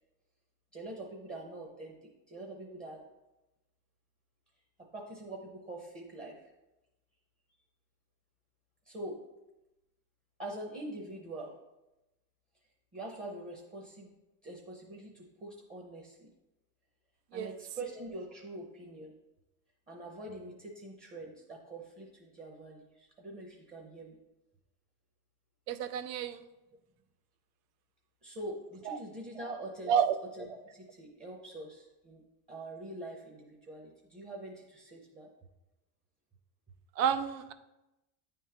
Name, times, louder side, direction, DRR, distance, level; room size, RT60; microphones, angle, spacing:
voice 1, 0.7-1.9 2.3-3.0 4.9-6.5 8.8-9.2 10.4-11.5 12.9-14.1 14.4-16.3 17.3-19.1 19.9-24.2 28.2-30.0 30.3-32.2 32.5-35.3, right 1 dB, 15° right, -1 dB, 0.7 m, -44 dB
voice 2, 25.7-26.4 29.9-30.1 37.0-37.5, right 8 dB, 90° right, 11 dB, 0.6 m, -29 dB
9.2 x 3.6 x 2.9 m, 0.97 s
supercardioid pair, 135°, 48 cm